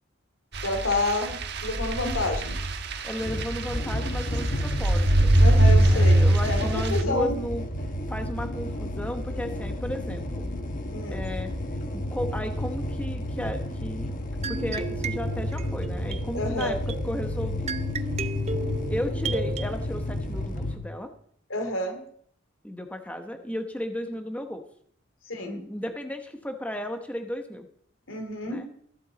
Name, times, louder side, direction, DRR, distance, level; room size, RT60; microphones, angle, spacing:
sound 1, 0.5-7.0, right 1 dB, 55° right, 1.3 m, -22 dB
voice 1, 0.6-2.6 5.4-7.4 10.9-11.2 16.3-16.8 21.5-22.0 25.3-25.6 28.1-28.6, left 2 dB, 90° left, 5 dB, 2.8 m, -29 dB
voice 2, 3.0-5.3 5.6-7.6 8.1-10.5 11.1-11.5 12.1-14.1 14.5-16.8 17.0-17.7 18.9-21.1 22.6-24.6 25.4-27.7 28.4-28.6, equal, 5° left, 6 dB, 1.0 m, -34 dB
sound 2, 3.2-20.8, left 1 dB, 40° left, 1.2 m, -31 dB
sound 3, 14.4-19.7, right 4 dB, 35° right, 0.5 m, -35 dB
15.0 x 11.5 x 4.1 m, 0.63 s
head